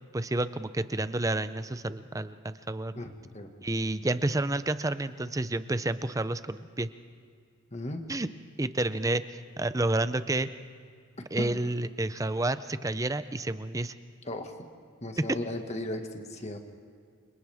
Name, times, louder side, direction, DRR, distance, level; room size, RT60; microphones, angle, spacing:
voice 1, 0.1-3.1 3.6-6.9 8.1-8.3 8.6-10.5 11.3-13.9, right 2 dB, 15° right, 13 dB, 0.5 m, -30 dB
voice 2, 2.9-3.5 7.7-8.0 11.4-11.5 14.3-14.5 15.0-16.6, left 1 dB, 30° left, 4 dB, 1.7 m, -36 dB
29.5 x 26.0 x 3.6 m, 2.2 s
head